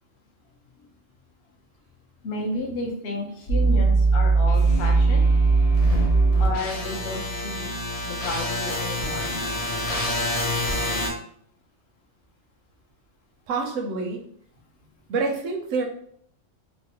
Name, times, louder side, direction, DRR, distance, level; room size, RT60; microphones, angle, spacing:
voice 1, 2.2-5.3 6.4-7.7 8.0-9.5, left 2 dB, 60° left, -1 dB, 0.9 m, -32 dB
sound 1, 3.5-11.1, right 3 dB, 40° left, 0.5 m, -22 dB
sound 2, 4.4-10.8, equal, 85° left, 1.1 m, -39 dB
voice 2, 13.5-14.2 15.1-15.8, right 4 dB, 80° right, 2 dB, 1.0 m, -27 dB
3.1 x 2.1 x 2.9 m, 0.64 s
omnidirectional pair, 1.3 m